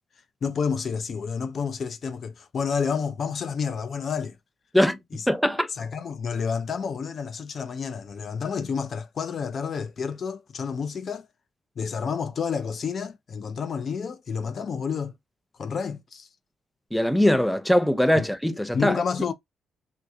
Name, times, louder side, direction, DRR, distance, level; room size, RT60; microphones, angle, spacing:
voice 1, 0.4-4.3 5.1-5.2 5.8-11.3 11.8-15.1 15.6-16.3 18.2-18.3 18.7-19.3, left 6 dB, 55° left, 0.4 m, -29 dB
voice 2, 5.3-5.7 16.9-19.0, left 1 dB, 5° left, 0.7 m, -21 dB
3.6 x 2.7 x 2.3 m
supercardioid pair, 65°, 0 cm